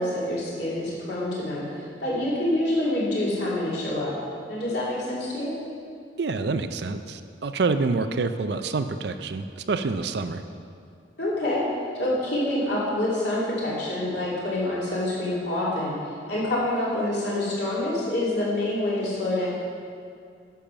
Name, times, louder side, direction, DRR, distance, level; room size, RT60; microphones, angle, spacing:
voice 1, 0.0-4.1 4.5-5.5 11.2-11.6 12.0-15.9 16.3-19.5, left 1 dB, 60° left, -7 dB, 3.0 m, -26 dB
voice 2, 6.2-10.4, right 4 dB, 60° right, 9 dB, 0.5 m, -27 dB
10.0 x 7.1 x 5.9 m, 2.3 s
head